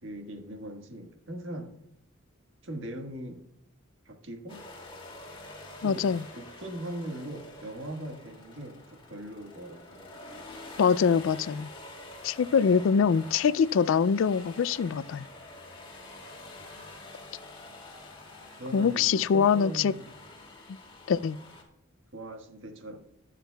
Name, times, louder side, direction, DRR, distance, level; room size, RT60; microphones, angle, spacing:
voice 1, 0.0-1.8 2.6-3.4 4.0-4.7 5.8-6.1 6.3-10.1 18.6-20.1 22.1-23.0, right 1 dB, 65° right, 1.6 m, -40 dB
sound 1, 4.5-21.6, left 2 dB, 25° left, 2.4 m, -47 dB
voice 2, 5.8-6.2 10.8-11.7 12.2-15.3 18.7-19.9 21.1-21.4, left 6 dB, 70° left, 0.3 m, -24 dB
21.5 x 7.4 x 2.3 m
head